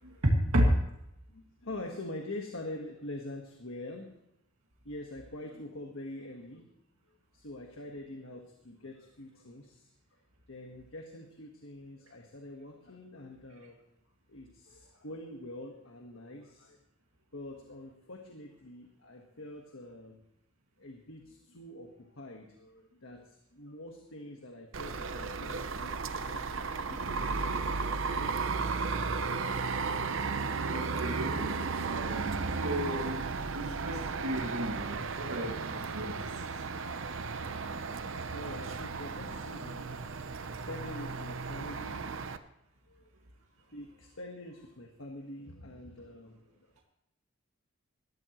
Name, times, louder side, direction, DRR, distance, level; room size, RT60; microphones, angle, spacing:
voice 1, 1.3-4.1 4.8-6.7 7.1-9.9 10.5-13.8 14.3-16.8 17.3-20.2 20.8-27.3 27.8-28.9 38.3-39.9 40.5-42.4 42.9-43.1 43.7-46.7, left 1 dB, 70° left, 2 dB, 1.5 m, -45 dB
sound 1, 24.7-42.4, right 4 dB, 65° right, 0.7 m, -34 dB
voice 2, 30.7-36.3 36.7-36.8, equal, 85° right, -1 dB, 2.2 m, -34 dB
19.0 x 13.5 x 3.1 m, 0.82 s
head